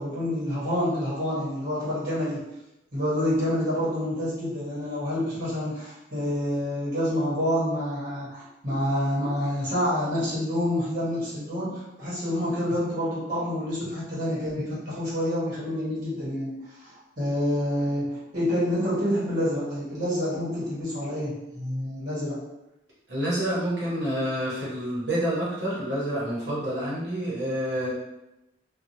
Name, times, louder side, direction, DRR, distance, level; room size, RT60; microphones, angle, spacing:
voice 1, 0.0-2.4 2.9-22.4, equal, 45° right, -9 dB, 1.3 m, -28 dB
voice 2, 23.1-27.9, right 1 dB, 65° right, -7 dB, 1.1 m, -28 dB
2.8 x 2.3 x 2.7 m, 0.91 s
head